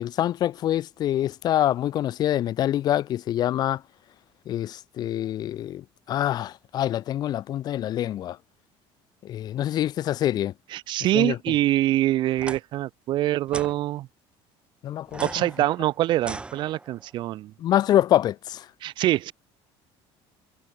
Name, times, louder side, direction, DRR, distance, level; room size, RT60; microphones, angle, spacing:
voice 1, 0.0-3.8 4.5-8.4 9.2-10.5 11.1-11.4 14.8-15.3 17.6-18.7, left 12 dB, 40° left, 0.7 m, -25 dB
voice 2, 10.7-14.1 15.2-17.5 18.8-19.3, right 14 dB, 45° right, 0.5 m, -24 dB
sound 1, 12.3-12.6 13.5-13.7 15.1-17.1, right 3 dB, 10° right, 1.8 m, -38 dB
cardioid pair, 170°, 11 cm